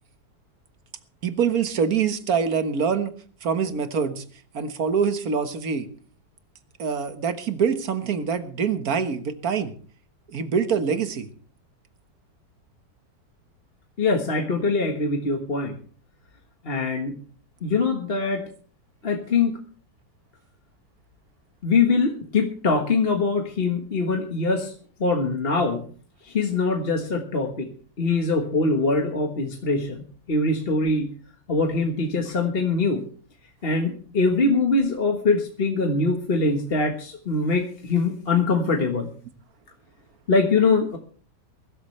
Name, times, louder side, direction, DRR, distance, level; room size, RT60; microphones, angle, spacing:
voice 1, 1.2-3.1 3.4-4.2 4.5-5.9 6.8-9.7 10.3-11.3, right 6 dB, 55° right, 9 dB, 1.7 m, -25 dB
voice 2, 14.0-15.7 16.6-17.1 17.6-18.4 19.0-19.6 21.6-24.7 25.0-25.8 26.2-27.7 28.0-31.1 31.5-33.0 33.6-39.1 40.3-41.0, left 3 dB, 35° left, 3 dB, 1.5 m, -23 dB
22.5 x 13.0 x 3.3 m, 0.43 s
omnidirectional pair, 2.0 m